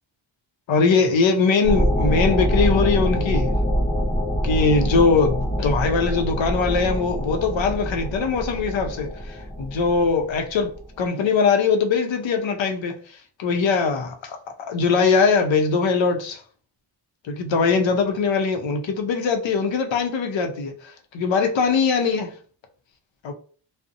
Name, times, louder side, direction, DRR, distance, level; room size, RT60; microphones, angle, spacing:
voice 1, 0.7-3.5 4.4-10.7 11.0-13.0 13.4-14.4 14.7-16.4 17.2-22.3 23.2-23.3, left 4 dB, 80° left, 0.6 m, -21 dB
sound 1, 1.6-10.8, equal, 20° left, 0.7 m, -24 dB
2.5 x 2.0 x 2.6 m
wide cardioid pair, 125°, 45 cm